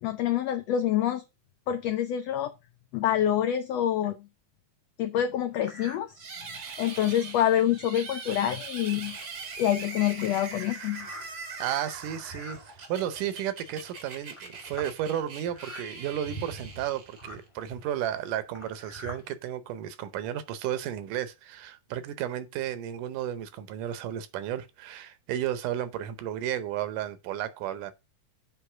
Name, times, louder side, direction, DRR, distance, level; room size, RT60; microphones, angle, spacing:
voice 1, 0.0-1.2 1.7-2.5 2.9-4.2 5.0-6.1 6.8-9.2 9.6-11.1, left 11 dB, 90° left, 1.4 m, -26 dB
sound 1, 5.5-6.1 6.6-6.7 7.3-7.4 7.6-7.9 8.6-8.7 9.1-19.3, equal, 20° left, 0.9 m, -46 dB
sound 2, 6.1-17.5, right 4 dB, 55° right, 1.0 m, -42 dB
voice 2, 11.6-27.9, right 11 dB, 80° right, 2.3 m, -33 dB
8.0 x 3.5 x 5.8 m
omnidirectional pair, 3.7 m